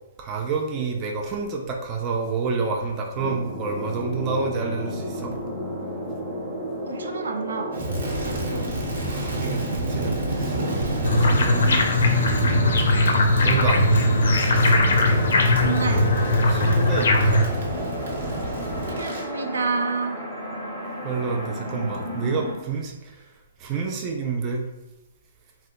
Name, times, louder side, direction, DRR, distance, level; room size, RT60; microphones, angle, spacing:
voice 1, 0.2-5.4 8.5-10.7 11.0-11.8 13.4-13.8 16.4-17.5 21.0-23.3 23.6-24.7, right 4 dB, 25° right, 1 dB, 0.4 m, -28 dB
sound 1, 3.1-22.6, equal, ahead, 0.9 m, -33 dB
voice 2, 6.8-7.7 15.6-16.1 18.9-20.2, right 4 dB, 90° right, 4 dB, 0.5 m, -28 dB
Crackle, 7.7-19.3, right 1 dB, 65° right, 0.9 m, -29 dB
sound 2, 11.0-17.4, left 2 dB, 75° left, 0.5 m, -20 dB
2.8 x 2.1 x 3.6 m, 1.0 s
hypercardioid pair, 160°, 0 cm